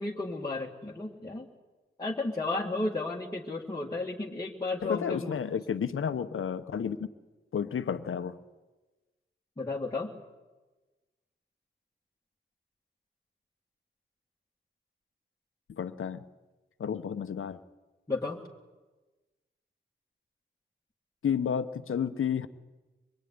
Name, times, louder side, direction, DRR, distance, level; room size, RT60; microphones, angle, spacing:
voice 1, 0.0-1.5 2.0-5.4 9.6-10.1 18.1-18.4, left 2 dB, 20° left, 2.2 m, -33 dB
voice 2, 4.8-7.0 7.5-8.4 15.7-16.2 16.8-17.6 21.2-22.5, left 7 dB, 85° left, 1.1 m, -31 dB
25.0 x 21.5 x 9.7 m
wide cardioid pair, 155°, 21 cm